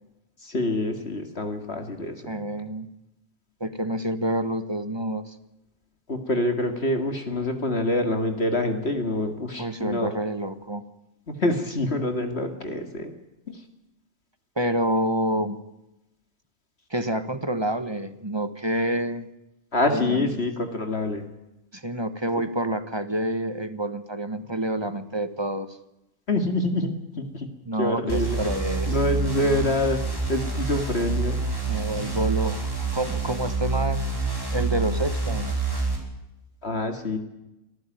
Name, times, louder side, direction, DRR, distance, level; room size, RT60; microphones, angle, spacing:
voice 1, 0.4-2.3 6.1-10.1 11.3-13.1 13.5-13.6 19.7-21.2 26.3-27.5 27.8-28.4 28.9-30.0 30.3-31.4 36.6-37.2, left 1 dB, 50° left, 6 dB, 2.4 m, -26 dB
voice 2, 2.2-2.9 3.6-5.3 9.6-10.8 14.6-15.6 16.9-19.3 19.9-20.4 21.7-25.8 27.6-29.0 29.4-29.8 31.7-34.2 34.5-35.5, right 1 dB, 20° right, 11 dB, 1.4 m, -28 dB
sound 1, 28.1-36.0, right 3 dB, 15° left, 5.9 m, -27 dB
25.5 x 14.5 x 9.3 m, 0.93 s
omnidirectional pair, 1.4 m